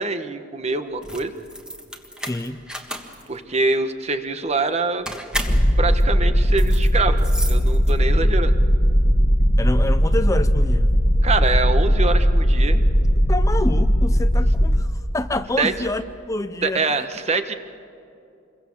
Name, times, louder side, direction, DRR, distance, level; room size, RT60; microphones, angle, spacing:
voice 1, 0.0-1.3 3.3-5.1 5.8-8.5 11.2-12.8 15.6-15.7 16.6-17.5, right 3 dB, 35° right, 9 dB, 1.2 m, -24 dB
sound 1, 0.9-8.3, equal, 5° right, 1.6 m, -33 dB
voice 2, 2.2-2.6 9.6-10.9 13.3-17.0, left 2 dB, 15° left, 10 dB, 0.5 m, -27 dB
sound 2, 5.5-14.8, equal, 30° left, 1.5 m, -18 dB
27.5 x 23.0 x 7.2 m, 2.6 s
head